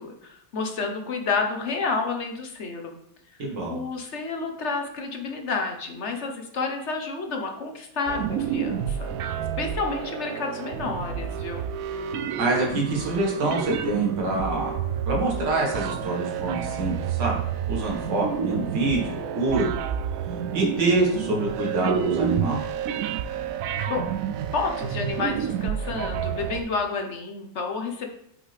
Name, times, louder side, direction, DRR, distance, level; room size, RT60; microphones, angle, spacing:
voice 1, 0.0-3.0 3.7-9.1 9.6-11.7 23.9-24.1 24.5-28.1, left 4 dB, 45° left, 3 dB, 1.0 m, -30 dB
voice 2, 3.4-3.8 12.4-14.7 15.1-17.4 17.7-19.7 20.5-22.6, right 2 dB, 70° right, -2 dB, 2.5 m, -25 dB
sound 1, 8.1-26.6, right 8 dB, 90° right, 0.7 m, -29 dB
8.4 x 5.6 x 3.5 m, 0.73 s
omnidirectional pair, 2.0 m